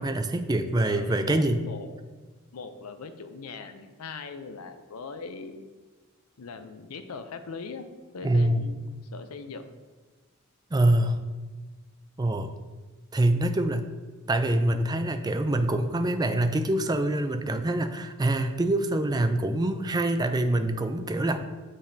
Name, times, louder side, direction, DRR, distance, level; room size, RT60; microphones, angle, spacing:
voice 1, 0.0-1.6 8.2-8.6 10.7-11.3 12.2-12.5 13.1-13.9 14.3-21.4, right 1 dB, 20° right, 8 dB, 0.4 m, -25 dB
voice 2, 0.8-2.0 2.5-5.7 6.4-7.9 8.1-9.7, left 4 dB, 90° left, 9 dB, 0.6 m, -40 dB
7.3 x 7.0 x 2.7 m, 1.3 s
head